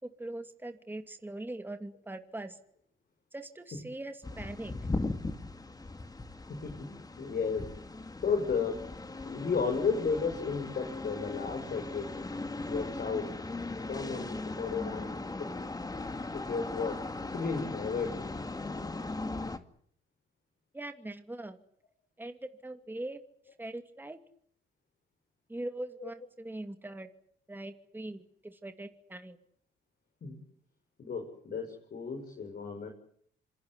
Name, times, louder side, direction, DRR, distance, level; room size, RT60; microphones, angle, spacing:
voice 1, 0.0-2.6 3.3-4.7 20.7-21.6 22.2-23.2 23.6-24.2 25.5-27.1 27.5-29.4, right 1 dB, 10° right, 7 dB, 2.4 m, -41 dB
sound 1, 4.2-19.6, left 2 dB, 20° left, 2.1 m, -38 dB
voice 2, 6.5-6.9 7.2-7.7 8.2-8.8 9.2-12.1 12.7-13.3 13.9-15.5 16.3-17.0 17.3-18.3 26.0-26.1 30.2-30.4 31.0-32.9, left 5 dB, 50° left, 3 dB, 6.8 m, -33 dB
26.5 x 23.0 x 8.2 m, 0.64 s
cardioid pair, 90°, 20 cm